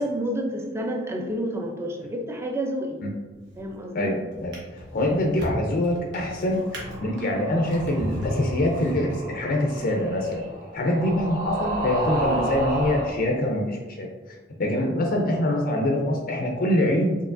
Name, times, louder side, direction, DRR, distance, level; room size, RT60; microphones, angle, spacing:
voice 1, 0.0-3.0 3.6-4.1, equal, 15° right, 2 dB, 0.4 m, -29 dB
Drawer open or close, 3.4-3.8 4.3-9.5 10.2-10.4, equal, 85° right, 1.1 m, -35 dB
voice 2, 3.9-6.6 7.0-10.4 10.7-14.1 14.6-17.2, left 1 dB, 50° left, 0 dB, 0.5 m, -24 dB
sound 1, 6.4-13.1, right 1 dB, 50° right, 1.1 m, -32 dB
4.5 x 2.8 x 2.5 m, 1.3 s
head